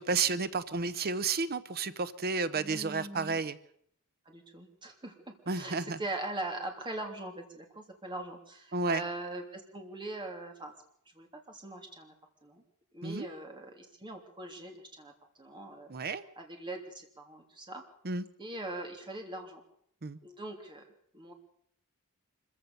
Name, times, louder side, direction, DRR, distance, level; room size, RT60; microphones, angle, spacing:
voice 1, 0.0-3.6 5.5-6.0 8.7-9.0 13.0-13.3 15.9-16.2 18.0-18.2 20.0-20.2, right 4 dB, 45° right, 14 dB, 0.8 m, -31 dB
voice 2, 2.5-3.4 4.2-10.7 11.1-12.1 12.4-12.6 12.9-15.1 15.4-15.9 16.4-17.8 18.4-19.6 20.2-21.3, right 2 dB, 20° right, 3 dB, 3.1 m, -41 dB
25.0 x 15.0 x 6.8 m, 0.66 s
head